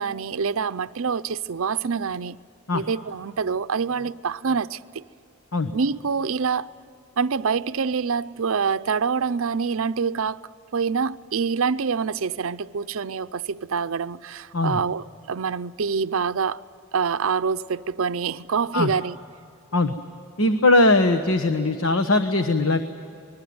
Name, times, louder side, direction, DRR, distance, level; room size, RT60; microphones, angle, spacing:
voice 1, 0.0-2.4 2.7-5.0 5.7-6.7 7.2-16.6 16.9-19.2, right 5 dB, 70° right, 0.5 m, -26 dB
voice 2, 20.4-22.9, left 2 dB, 75° left, 1.2 m, -20 dB
26.5 x 21.0 x 9.5 m
head